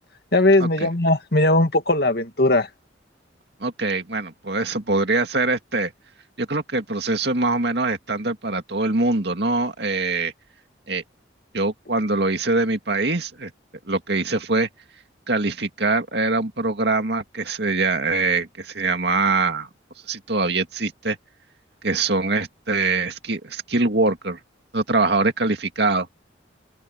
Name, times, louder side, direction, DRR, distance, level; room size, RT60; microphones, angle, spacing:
voice 1, 0.3-2.7, left 2 dB, 55° left, 2.3 m, -18 dB
voice 2, 3.6-5.9 6.4-10.3 10.9-11.0 11.5-13.5 13.9-14.7 15.3-19.7 20.1-21.2 21.8-24.4 24.7-26.1, right 3 dB, 60° right, 2.4 m, -23 dB
open air
head